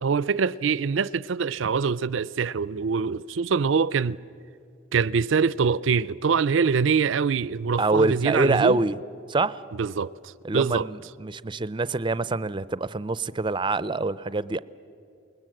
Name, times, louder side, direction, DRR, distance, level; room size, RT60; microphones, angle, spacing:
voice 1, 0.0-4.2 4.9-8.8 9.8-10.1 10.5-10.9, right 5 dB, 75° right, 0.5 m, -24 dB
voice 2, 7.8-9.0 9.3-9.6 10.4-14.6, right 3 dB, 25° right, 0.5 m, -25 dB
28.5 x 20.5 x 7.8 m
head